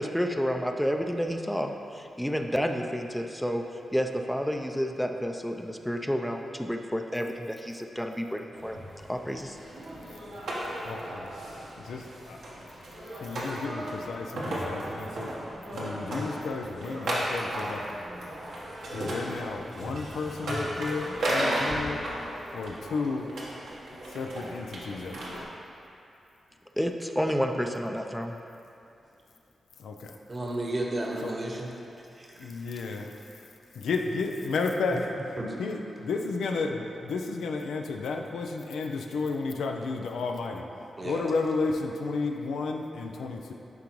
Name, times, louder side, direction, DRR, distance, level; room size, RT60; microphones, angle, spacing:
voice 1, 0.0-3.6 3.9-8.8 9.1-9.6 26.8-28.4, equal, 5° left, 4 dB, 0.5 m, -30 dB
sound 1, 8.5-25.4, right 1 dB, 80° right, 1.2 m, -35 dB
voice 2, 10.8-11.3 11.8-12.4 13.2-15.3 15.7-18.0 18.9-22.0 22.5-23.3 24.0-25.4 29.8-30.1 31.2-31.4 32.4-33.2 33.7-40.7 41.0-43.5, left 4 dB, 80° left, 2 dB, 0.4 m, -32 dB
voice 3, 30.3-31.7 32.2-32.5 35.4-35.6 41.0-41.2, right 1 dB, 40° right, 0 dB, 1.1 m, -33 dB
10.5 x 3.8 x 3.1 m, 2.7 s
supercardioid pair, 45°, 0 cm